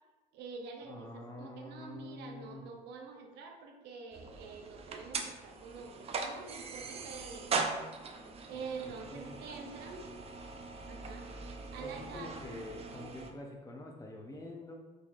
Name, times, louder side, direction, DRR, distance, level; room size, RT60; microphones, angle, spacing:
voice 1, 0.3-7.7 8.1-10.0 10.8-11.3 11.7-12.5, right 5 dB, 85° right, 3 dB, 0.6 m, -46 dB
voice 2, 0.8-2.6 8.5-9.4 11.8-14.7, left 2 dB, 20° left, 1 dB, 0.6 m, -46 dB
sound 1, 4.1-13.3, right 4 dB, 35° right, 0.4 m, -40 dB
4.2 x 3.2 x 2.4 m, 1.2 s
cardioid pair, 110°, 17 cm